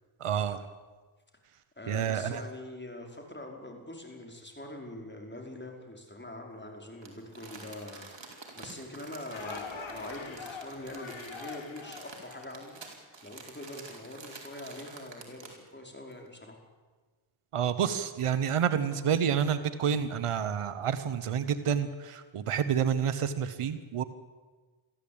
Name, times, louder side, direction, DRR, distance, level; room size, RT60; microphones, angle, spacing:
voice 1, 0.2-0.6 1.9-2.4 17.5-24.0, right 8 dB, 90° right, 11 dB, 1.2 m, -29 dB
voice 2, 1.8-12.8 13.2-16.6, left 1 dB, 20° left, 2 dB, 5.1 m, -44 dB
Crumpling crinkling, 7.0-15.7 16.1-16.2, right 3 dB, 60° right, 4.7 m, -49 dB
sound 1, 9.3-12.9, left 4 dB, 65° left, 2.8 m, -43 dB
22.5 x 15.0 x 8.8 m, 1.3 s
cardioid pair, 60°, 50 cm